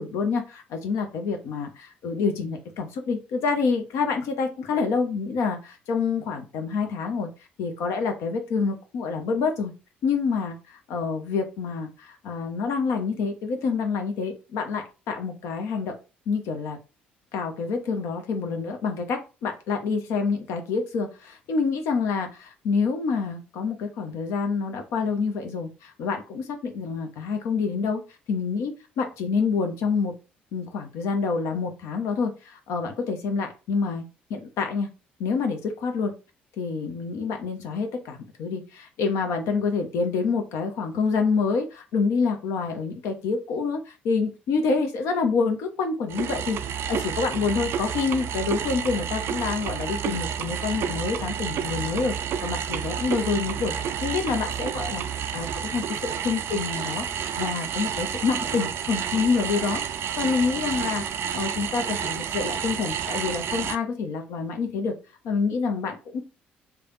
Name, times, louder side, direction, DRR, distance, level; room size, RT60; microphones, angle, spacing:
voice 1, 0.0-7.3 7.6-9.7 10.0-15.9 16.3-16.8 17.3-28.0 28.3-30.1 30.5-34.9 35.2-36.1 36.6-52.1 52.4-53.7 54.0-59.8 60.2-64.9 65.2-66.2, left 5 dB, 65° left, 4 dB, 0.8 m, -27 dB
sound 1, 46.1-63.8, right 8 dB, 55° right, 0.3 m, -30 dB
3.3 x 2.3 x 4.0 m, 0.31 s
hypercardioid pair, 50°, 5 cm